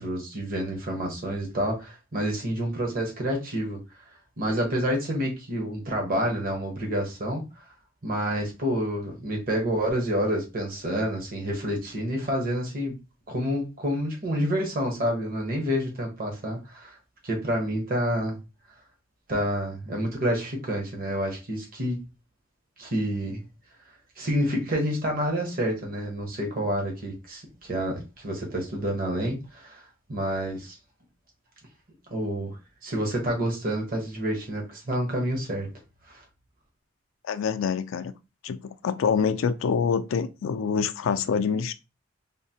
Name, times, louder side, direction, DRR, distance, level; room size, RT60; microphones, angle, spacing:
voice 1, 0.0-3.8 4.4-7.4 8.0-13.0 13.3-17.0 17.2-18.4 19.3-22.1 22.8-23.4 24.2-29.8 30.1-30.8 32.1-35.7 36.1-36.2, equal, 45° right, 0.9 m, -28 dB
voice 2, 37.3-38.1 38.4-41.7, left 6 dB, 75° left, 0.3 m, -26 dB
3.7 x 2.0 x 2.7 m
head